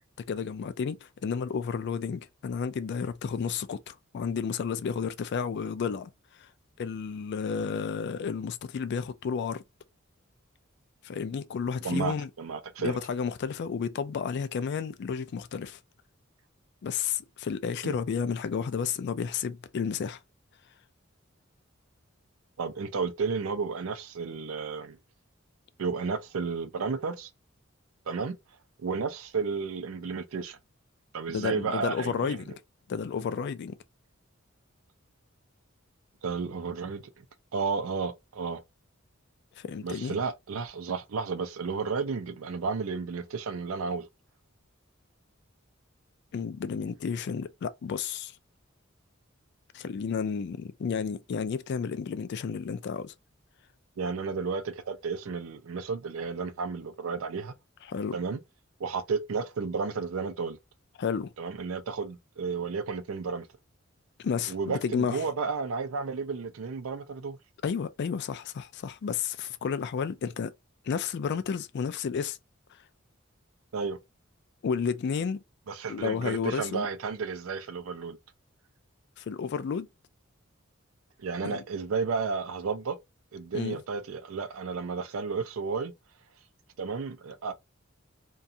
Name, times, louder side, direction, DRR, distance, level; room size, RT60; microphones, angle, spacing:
voice 1, 0.3-6.1 6.4-6.5 6.8-9.6 11.0-12.3 12.8-15.8 16.8-20.2 31.3-32.5 32.9-33.8 39.6-40.2 46.3-48.3 49.7-53.1 57.9-58.2 61.0-61.3 64.2-65.3 67.6-70.5 70.9-72.4 74.6-75.4 75.9-76.9 79.2-79.9 81.4-81.6 83.5-83.8, left 6 dB, 55° left, 0.3 m, -32 dB
voice 2, 11.8-13.0 17.8-18.0 22.6-25.0 25.8-27.3 28.1-28.4 28.8-30.6 31.1-32.6 36.2-37.2 37.5-38.6 39.8-44.1 54.0-57.5 58.1-58.4 58.8-60.6 61.4-63.5 64.5-67.4 73.7-74.0 75.7-78.2 81.2-83.0 83.3-85.9 86.8-87.5, right 5 dB, 85° right, 0.5 m, -32 dB
2.5 x 2.3 x 2.7 m
head